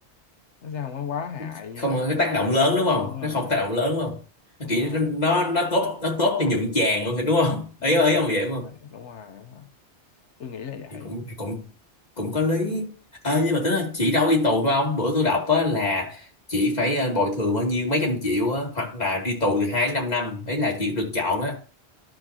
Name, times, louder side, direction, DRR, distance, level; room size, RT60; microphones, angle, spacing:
voice 1, 0.6-2.0 3.0-3.6 4.6-5.0 7.8-8.0 8.9-9.6 10.4-11.1, left 7 dB, 85° left, 1.1 m, -36 dB
voice 2, 1.4-4.2 4.6-8.7 10.9-11.7 12.2-12.9 13.2-21.6, left 2 dB, 40° left, 2.6 m, -23 dB
12.0 x 6.5 x 2.8 m
omnidirectional pair, 1.2 m